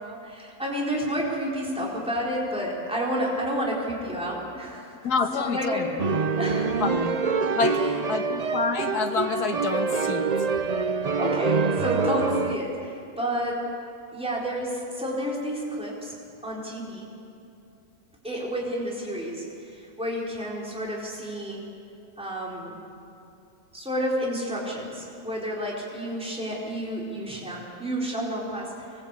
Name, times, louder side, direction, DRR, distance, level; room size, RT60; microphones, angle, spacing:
voice 1, 0.0-4.9 5.3-5.9 6.4-6.8 7.8-7.9 11.2-13.6 14.1-16.1 16.4-17.1 18.2-21.6 22.2-22.7 23.7-28.9, equal, 5° right, -4 dB, 4.4 m, -30 dB
voice 2, 5.0-6.0 6.8-7.2 7.6-10.3, left 5 dB, 85° left, 4 dB, 1.9 m, -27 dB
sound 1, 6.0-12.6, right 5 dB, 45° right, 0.5 m, -25 dB
25.5 x 21.0 x 8.4 m, 2.6 s
omnidirectional pair, 1.6 m